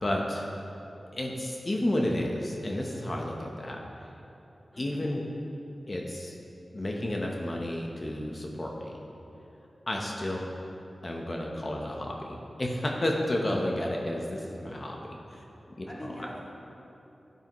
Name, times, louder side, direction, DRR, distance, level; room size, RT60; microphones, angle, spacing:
voice 1, 0.0-0.5 1.1-3.8 4.8-5.2 5.9-6.3 6.7-9.0 9.9-10.4 11.0-15.5 15.8-16.3, left 1 dB, 35° left, 0 dB, 0.9 m, -31 dB
voice 2, 4.7-5.1 15.9-16.4, equal, 20° left, -5 dB, 2.1 m, -44 dB
11.5 x 8.3 x 3.1 m, 2.9 s
wide cardioid pair, 75°, 0 cm